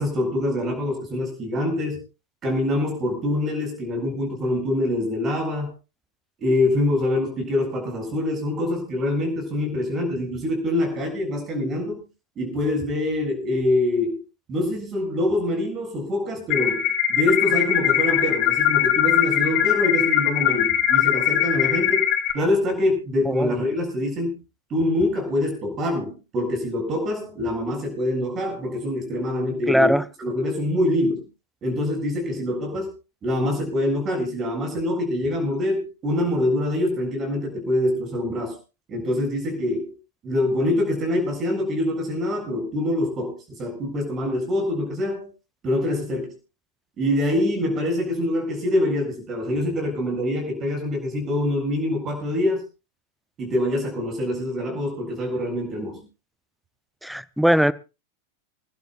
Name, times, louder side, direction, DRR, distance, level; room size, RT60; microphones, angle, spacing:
voice 1, 0.0-2.0 2.4-5.7 6.4-12.1 12.4-14.2 14.5-22.1 22.3-24.4 24.7-31.3 31.6-32.9 33.2-38.6 38.9-39.9 40.2-45.3 45.6-46.3 47.0-52.6 53.4-56.0, left 1 dB, 25° right, 7.3 m, -25 dB
sound 1, 16.5-22.3, left 11 dB, 40° left, 2.2 m, -21 dB
voice 2, 29.7-30.0 57.0-57.7, equal, ahead, 0.6 m, -20 dB
28.0 x 12.0 x 2.5 m
figure-of-eight pair, 90°, 0 cm